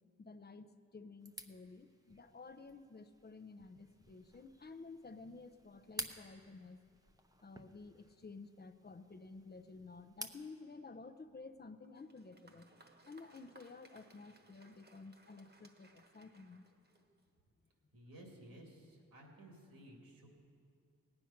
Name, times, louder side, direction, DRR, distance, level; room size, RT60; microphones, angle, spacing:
voice 1, 0.2-6.8 7.4-12.7 13.1-16.6, left 3 dB, 30° left, 9 dB, 0.6 m, -53 dB
nail clipper, 1.2-10.5, right 1 dB, 10° right, 0.7 m, -52 dB
Applause, 11.8-17.4, right 2 dB, 30° right, 1.2 m, -65 dB
voice 2, 17.9-20.3, right 1 dB, 90° right, 0 dB, 2.5 m, -56 dB
17.5 x 9.8 x 5.8 m, 2.3 s
wide cardioid pair, 90°, 34 cm